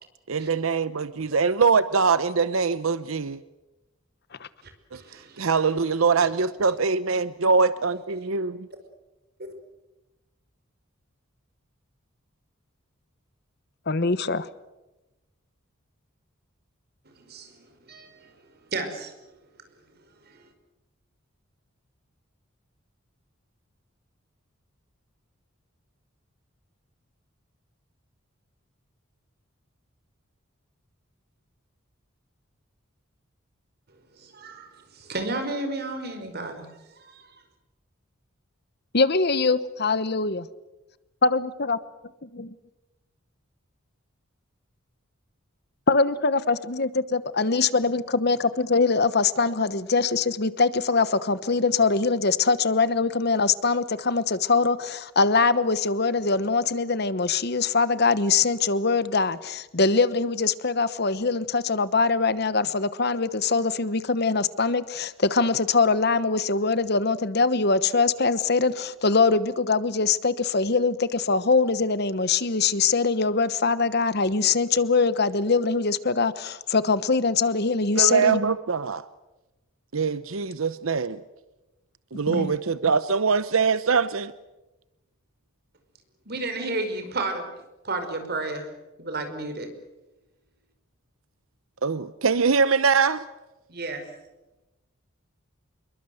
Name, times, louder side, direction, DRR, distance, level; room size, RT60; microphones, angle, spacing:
voice 1, 0.3-3.4 4.9-5.0 5.4-8.7 78.0-79.0 79.9-81.2 82.1-84.3 91.8-93.2, right 5 dB, 80° right, 0.8 m, -23 dB
voice 2, 4.6-5.5 6.2-6.3 9.4-9.5 17.2-18.4 18.7-19.1 20.2-20.4 34.2-36.7 37.0-37.4 86.3-87.5 87.8-88.7 89.0-89.7 93.7-94.1, right 2 dB, 50° right, 5.2 m, -33 dB
voice 3, 13.9-14.5 38.9-40.5 41.2-41.8 42.4-42.5 45.9-78.4 82.3-82.5, left 4 dB, 50° left, 1.1 m, -23 dB
27.0 x 22.5 x 8.0 m
head